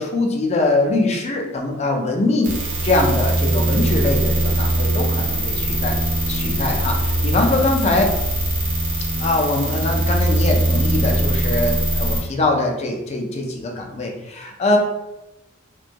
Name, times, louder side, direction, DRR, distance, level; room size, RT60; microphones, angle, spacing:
voice 1, 0.0-6.0 6.3-8.2 9.2-14.8, left 2 dB, 30° left, 2 dB, 0.4 m, -22 dB
sound 1, 2.4-12.2, right 1 dB, 85° right, 0.9 m, -21 dB
2.5 x 2.2 x 2.7 m, 0.95 s
head